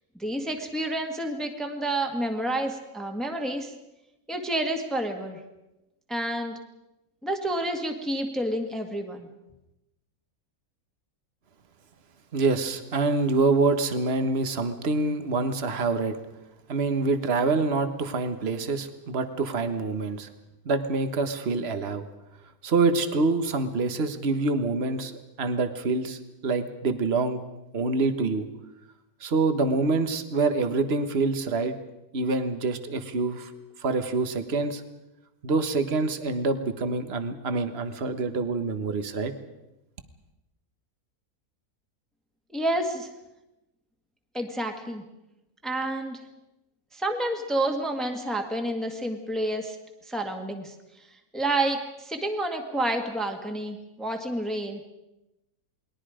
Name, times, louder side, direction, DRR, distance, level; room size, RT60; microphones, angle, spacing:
voice 1, 0.2-3.7 4.3-5.4 6.1-6.6 7.2-9.3 42.5-43.1 44.3-45.0 45.6-46.2 46.9-49.8 50.1-50.7 51.3-54.8, right 1 dB, ahead, 3 dB, 1.8 m, -29 dB
voice 2, 12.3-16.2 16.7-20.3 20.6-22.0 22.6-25.1 25.4-27.4 27.7-28.5 29.2-31.7 32.1-33.5 33.8-34.8 35.4-39.3, right 3 dB, 45° right, 9 dB, 1.6 m, -26 dB
29.0 x 21.0 x 5.0 m, 0.95 s
omnidirectional pair, 1.6 m